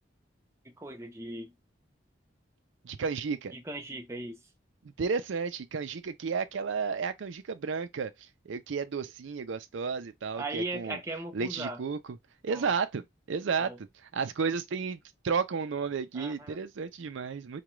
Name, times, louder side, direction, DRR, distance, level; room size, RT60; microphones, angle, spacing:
voice 1, 0.6-1.5 3.5-4.4 10.4-11.8 12.5-12.7 13.5-13.8 16.1-16.6, right 2 dB, 15° right, 0.7 m, -38 dB
voice 2, 2.8-3.5 5.0-8.1 8.5-11.0 11.3-12.0 12.4-13.0 13.3-13.9 14.1-15.0 15.2-17.6, right 5 dB, 80° right, 0.5 m, -32 dB
4.8 x 2.3 x 3.0 m
head